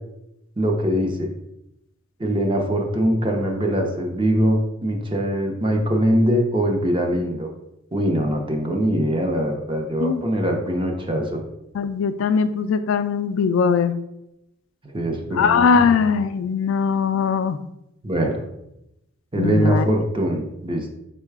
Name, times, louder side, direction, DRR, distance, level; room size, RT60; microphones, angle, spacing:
voice 1, 0.6-1.3 2.2-7.5 7.9-11.4 14.8-15.9 18.0-18.4 19.3-20.9, equal, 25° right, 2 dB, 0.6 m, -22 dB
voice 2, 11.7-13.9 15.3-17.6 19.4-19.8, left 5 dB, 70° left, 10 dB, 0.3 m, -20 dB
4.7 x 2.2 x 4.6 m, 0.85 s
head